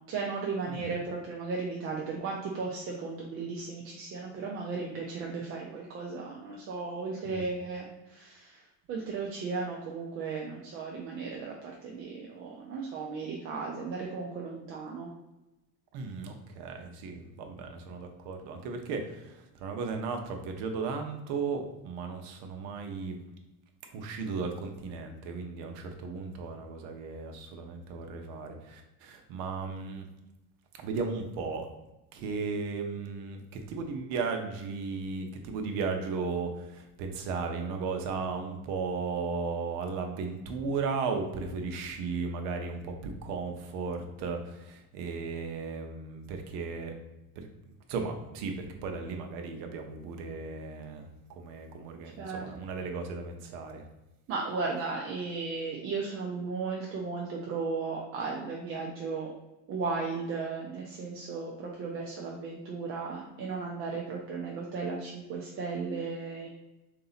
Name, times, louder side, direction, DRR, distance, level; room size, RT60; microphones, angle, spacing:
voice 1, 0.1-8.6 8.9-15.1 52.2-52.5 54.3-59.3 59.7-66.5, right 4 dB, 35° right, -1 dB, 0.5 m, -35 dB
voice 2, 15.9-23.2 23.9-30.1 30.8-31.7 32.1-46.9 47.4-53.9, right 4 dB, 65° right, 4 dB, 0.8 m, -35 dB
3.9 x 2.8 x 4.0 m, 0.97 s
cardioid pair, 150°, 38 cm